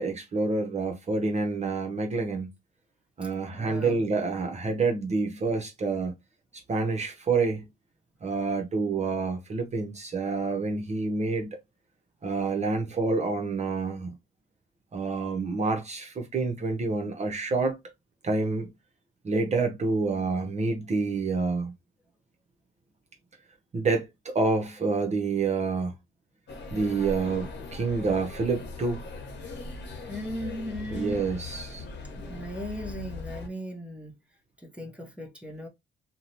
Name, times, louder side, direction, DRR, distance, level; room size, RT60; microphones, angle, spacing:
voice 1, 0.0-2.5 3.2-6.1 6.7-7.7 8.2-11.6 12.2-14.2 14.9-17.8 18.2-18.7 19.2-21.7 23.7-25.9 26.7-29.0 30.9-31.8, right 4 dB, 35° right, 0.7 m, -28 dB
voice 2, 3.5-4.0 30.1-31.3 32.2-34.1 34.6-35.7, equal, 5° right, 0.9 m, -37 dB
sound 1, 26.5-33.5, left 3 dB, 60° left, 1.0 m, -40 dB
2.6 x 2.0 x 2.9 m
cardioid pair, 90°, 20 cm